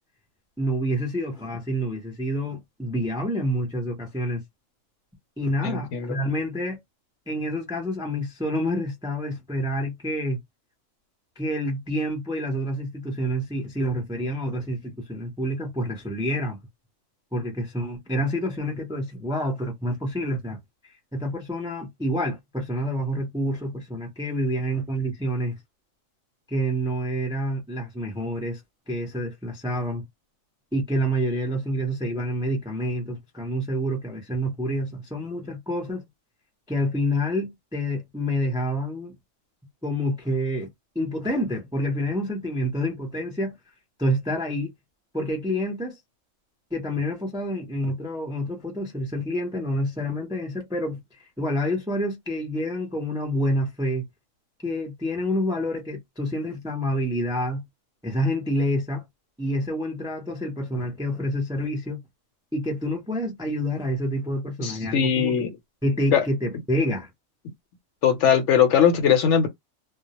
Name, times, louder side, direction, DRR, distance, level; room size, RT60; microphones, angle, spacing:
voice 1, 0.6-4.4 5.4-6.8 7.3-10.4 11.4-16.6 17.3-20.6 21.1-25.5 26.5-28.6 28.9-30.0 30.7-36.0 36.7-39.1 39.8-40.7 40.9-43.6 44.0-44.7 45.1-46.0 46.7-51.0 51.4-54.0 54.6-57.6 58.0-59.1 59.4-62.0 62.5-65.4 65.8-67.1, equal, 5° right, 0.4 m, -28 dB
voice 2, 5.6-6.2 64.6-65.5 66.1-66.2 68.0-69.5, left 8 dB, 70° left, 0.9 m, -20 dB
2.2 x 2.0 x 2.8 m
omnidirectional pair, 1.4 m